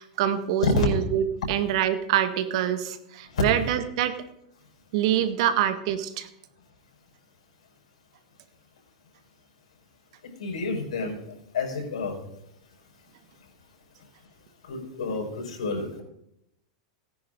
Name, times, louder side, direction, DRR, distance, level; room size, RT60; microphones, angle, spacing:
voice 1, 0.0-4.2 4.9-6.3, right 10 dB, 60° right, 10 dB, 1.7 m, -25 dB
voice 2, 10.4-11.2 11.5-12.2 14.7-16.0, left 3 dB, 85° left, 0 dB, 5.3 m, -28 dB
17.5 x 10.5 x 3.9 m, 0.80 s
supercardioid pair, 135°, 4 cm